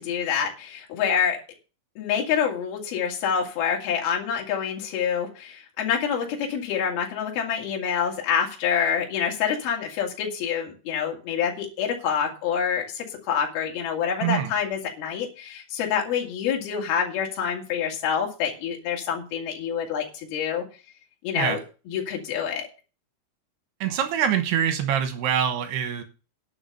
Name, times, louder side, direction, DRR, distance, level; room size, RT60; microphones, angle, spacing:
voice 1, 0.0-1.4 2.0-20.6 21.2-21.6 21.9-22.7, left 7 dB, 60° left, 0 dB, 4.0 m, -27 dB
voice 2, 14.2-14.5 21.4-21.6 23.8-26.0, right 9 dB, 70° right, 8 dB, 2.9 m, -24 dB
11.0 x 6.9 x 6.6 m, 0.35 s
omnidirectional pair, 5.4 m